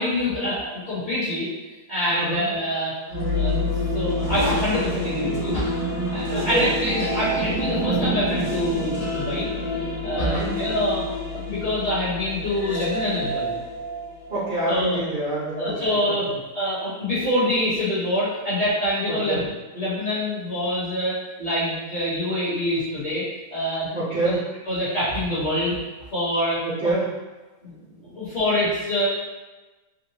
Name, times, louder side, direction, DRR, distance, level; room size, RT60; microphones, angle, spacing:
voice 1, 0.0-1.5 1.9-2.9 3.3-3.7 3.9-5.7 6.1-9.5 10.0-11.0 11.3-13.5 14.7-15.0 15.5-16.3 16.5-23.2 23.5-23.9 24.2-24.4 24.6-25.8 26.1-26.9 27.6-27.7 28.1-29.1, left 1 dB, 35° left, -11 dB, 1.0 m, -25 dB
voice 2, 2.1-2.4 6.3-6.6 10.1-10.5 14.3-16.4 19.1-19.4 23.9-24.4 26.6-27.1 27.8-28.2, right 2 dB, 40° right, -11 dB, 0.9 m, -27 dB
sound 1, 3.1-14.9, left 1 dB, 85° right, 1.7 m, -28 dB
3.8 x 2.0 x 2.9 m, 1.2 s
omnidirectional pair, 1.6 m